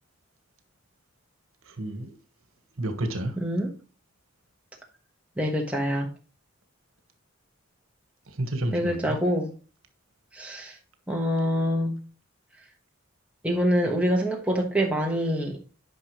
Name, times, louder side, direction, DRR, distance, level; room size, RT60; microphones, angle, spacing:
voice 1, 1.6-2.1 2.8-3.4 8.3-9.2, right 1 dB, 80° right, 1.3 m, -30 dB
voice 2, 3.4-3.7 5.4-6.1 8.7-9.5 10.3-10.7 11.1-12.0 13.4-15.6, equal, 5° right, 1.2 m, -25 dB
9.7 x 5.3 x 3.0 m
head